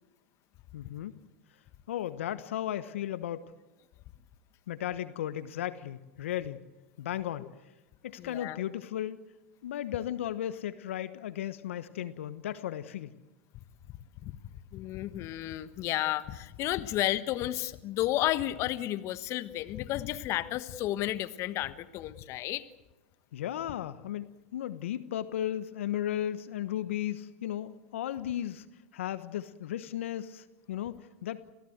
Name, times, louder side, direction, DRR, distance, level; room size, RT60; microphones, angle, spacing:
voice 1, 0.7-1.1 1.9-3.5 4.7-6.6 7.0-7.5 8.0-9.2 9.6-13.1 23.3-28.7 28.9-31.5, left 11 dB, 70° left, 14 dB, 1.1 m, -35 dB
voice 2, 8.2-8.6 14.2-14.4 14.7-22.6, left 14 dB, 45° left, 13 dB, 1.4 m, -32 dB
27.0 x 17.0 x 8.0 m, 1.1 s
hypercardioid pair, 100°, 7 cm